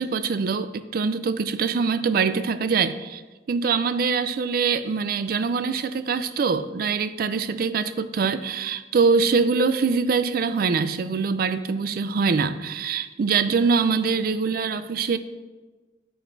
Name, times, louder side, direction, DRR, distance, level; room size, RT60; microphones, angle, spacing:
voice 1, 0.0-3.2 3.5-15.2, right 5 dB, 55° right, 12 dB, 0.4 m, -23 dB
8.4 x 7.9 x 2.6 m, 1.3 s
head